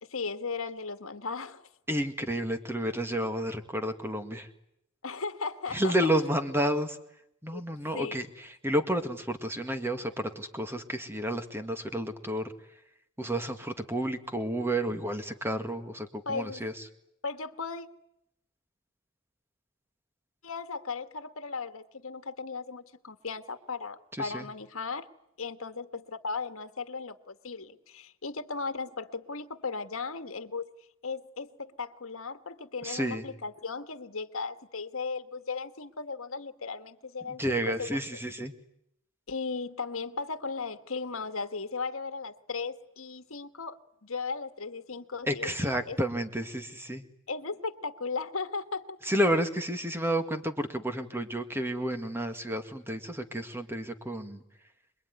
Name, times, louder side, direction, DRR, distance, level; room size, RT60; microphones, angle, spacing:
voice 1, 0.0-1.7 5.0-6.1 7.5-7.6 7.9-8.2 16.2-16.6 17.2-17.9 20.4-25.1 25.4-30.7 31.0-38.0 39.3-46.0 47.3-49.0, left 4 dB, 70° left, 1.6 m, -36 dB
voice 2, 1.9-4.5 5.7-7.0 7.4-12.4 13.2-16.7 24.2-24.5 32.8-33.2 37.4-38.5 45.2-47.0 49.0-54.4, right 1 dB, 10° right, 2.0 m, -31 dB
26.5 x 22.0 x 9.7 m
head